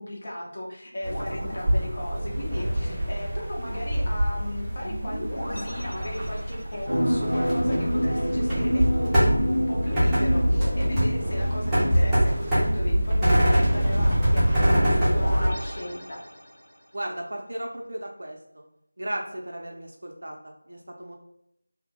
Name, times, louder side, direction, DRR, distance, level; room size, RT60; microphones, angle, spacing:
voice 1, 0.0-16.2, left 1 dB, 40° left, -3 dB, 0.7 m, -36 dB
sound 1, 1.0-2.6 4.8-6.9 9.6-12.1 13.9-16.8, equal, 70° left, 1.0 m, -38 dB
sound 2, 1.0-15.5, equal, 5° right, 0.6 m, -24 dB
sound 3, 6.9-12.9 13.3-13.4, equal, 85° left, 0.6 m, -28 dB
voice 2, 16.9-18.6 19.0-21.1, right 1 dB, 55° right, 1 dB, 0.4 m, -35 dB
2.7 x 2.0 x 3.4 m, 0.76 s
figure-of-eight pair, 170°, 0 cm